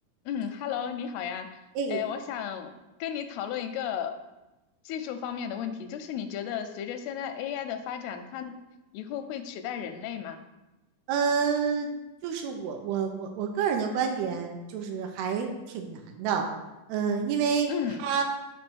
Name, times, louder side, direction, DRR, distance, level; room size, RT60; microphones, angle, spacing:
voice 1, 0.3-1.6 1.9-2.7 3.0-4.1 4.9-8.6 8.9-10.4 17.7-18.0, left 8 dB, 90° left, 9 dB, 2.6 m, -34 dB
voice 2, 11.1-11.9 12.2-16.5 16.9-17.7 18.0-18.2, right 6 dB, 85° right, 4 dB, 2.7 m, -28 dB
7.4 x 3.1 x 6.2 m, 1.0 s
omnidirectional pair, 4.5 m